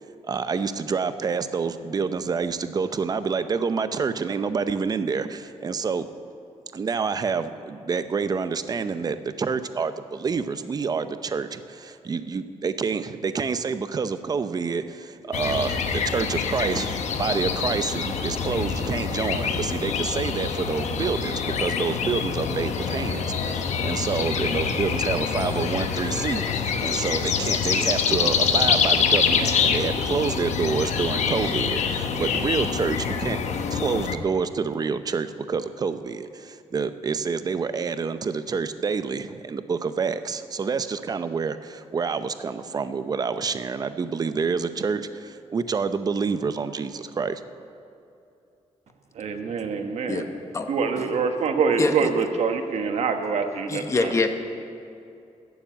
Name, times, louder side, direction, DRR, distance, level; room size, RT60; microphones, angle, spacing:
voice 1, 0.3-6.0 6.7-33.4 33.7-47.4, right 5 dB, 35° right, 11 dB, 0.6 m, -28 dB
sound 1, 15.3-34.2, left 6 dB, 85° left, 0.9 m, -25 dB
voice 2, 49.1-50.3 50.7-54.2, right 5 dB, 75° right, 5 dB, 1.2 m, -25 dB
voice 3, 53.7-54.3, left 3 dB, 25° left, 6 dB, 0.9 m, -23 dB
14.5 x 7.2 x 9.0 m, 2.7 s
wide cardioid pair, 150°, 12 cm